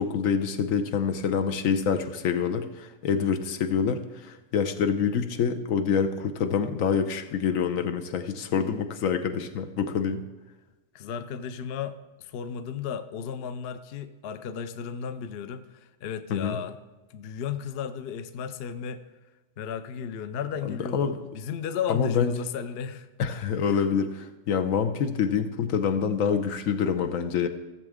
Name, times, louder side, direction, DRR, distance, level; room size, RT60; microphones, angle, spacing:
voice 1, 0.0-10.2 16.3-16.6 20.7-21.2 21.9-22.3 23.2-27.5, left 6 dB, 80° left, 8 dB, 1.1 m, -26 dB
voice 2, 10.9-16.8 17.1-19.0 19.6-23.1 23.7-23.8, left 7 dB, 60° left, 11 dB, 0.7 m, -34 dB
15.0 x 7.2 x 3.6 m, 1.1 s
omnidirectional pair, 1.4 m